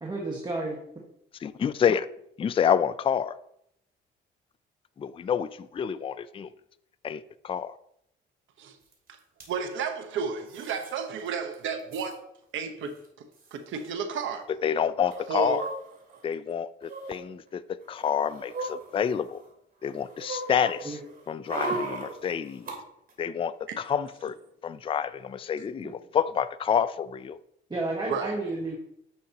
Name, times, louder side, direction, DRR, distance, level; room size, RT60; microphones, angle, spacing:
voice 1, 0.0-0.8 20.8-21.0 25.8-25.9 27.7-28.8, right 2 dB, 20° right, 1.5 m, -31 dB
voice 2, 1.4-2.1 2.4-3.4 5.0-6.5 7.0-7.8 14.6-15.7 16.2-17.6 17.9-19.4 19.8-21.0 21.3-22.7 23.2-24.3 24.6-27.4, left 8 dB, 25° left, 0.4 m, -28 dB
sound 1, 8.9-9.0 9.2-9.5 10.5-10.9 11.3-11.4 11.5-12.1 13.0-13.1 13.3-13.5 15.1-16.2 16.8-17.2 17.8-19.5 19.8-22.7 23.1-23.2, right 2 dB, 45° right, 2.9 m, -37 dB
voice 3, 9.5-12.2 12.5-12.9 13.5-14.4 15.3-15.6 23.7-23.8 28.1-28.3, right 6 dB, 75° right, 1.1 m, -32 dB
9.7 x 6.3 x 2.9 m
cardioid pair, 90°, 20 cm